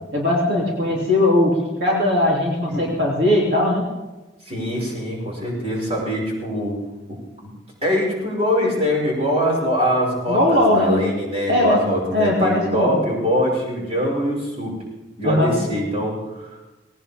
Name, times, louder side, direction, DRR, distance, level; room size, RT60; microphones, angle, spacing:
voice 1, 0.1-3.9 10.3-11.0 11.5-11.8 12.1-13.0 15.2-15.5, left 1 dB, 65° right, -3 dB, 3.1 m, -19 dB
voice 2, 4.4-6.8 7.4-7.5 7.8-14.7 15.2-16.6, equal, 35° right, -3 dB, 5.9 m, -23 dB
19.5 x 18.5 x 3.7 m, 1.1 s
head